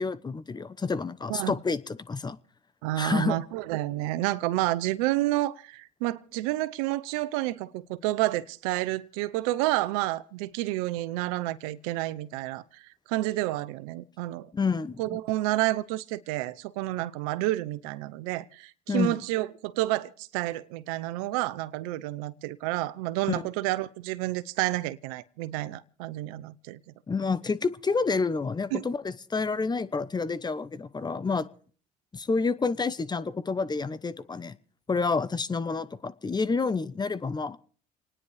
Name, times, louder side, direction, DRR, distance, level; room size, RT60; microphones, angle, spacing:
voice 1, 0.0-2.4 3.0-3.4 14.5-15.0 18.9-19.2 27.1-31.5 32.1-34.6 34.9-37.6, left 4 dB, 25° left, 1.0 m, -29 dB
voice 2, 2.8-14.5 15.0-26.8 28.7-28.9, right 17 dB, 85° right, 0.7 m, -30 dB
28.0 x 9.9 x 4.8 m
supercardioid pair, 75°, 18 cm